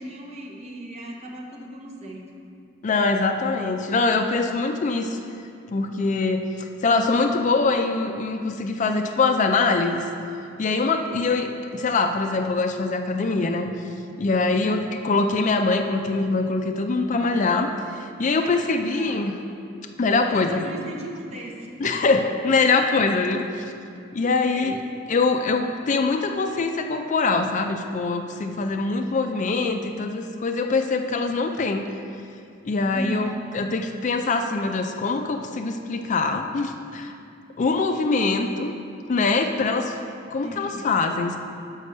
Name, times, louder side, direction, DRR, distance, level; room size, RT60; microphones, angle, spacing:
voice 1, 0.0-2.2 2.6-2.7 11.0-11.4 14.6-15.0 18.3-19.3 20.0-22.1 23.1-23.3 24.2-25.0 32.9-33.4 38.4-38.6 40.4-40.9, right 1 dB, 35° right, -1 dB, 0.9 m, -38 dB
voice 2, 2.8-5.2 5.7-10.1 10.6-13.7 14.2-19.4 20.0-20.7 21.8-23.4 24.1-24.8 25.1-31.8 32.6-37.1 37.6-38.7 39.1-39.9 40.3-41.4, left 3 dB, 40° left, 6 dB, 0.4 m, -23 dB
6.4 x 5.2 x 6.5 m, 2.5 s
head